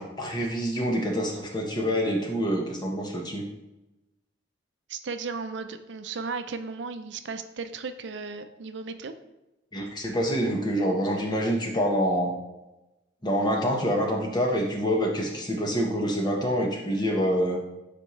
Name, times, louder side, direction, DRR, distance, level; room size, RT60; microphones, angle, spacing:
voice 1, 0.0-3.4 9.7-12.3 13.2-17.6, equal, 20° left, 0 dB, 1.1 m, -26 dB
voice 2, 4.9-9.1, right 4 dB, 70° right, 10 dB, 0.5 m, -35 dB
9.0 x 4.3 x 3.2 m, 0.98 s
head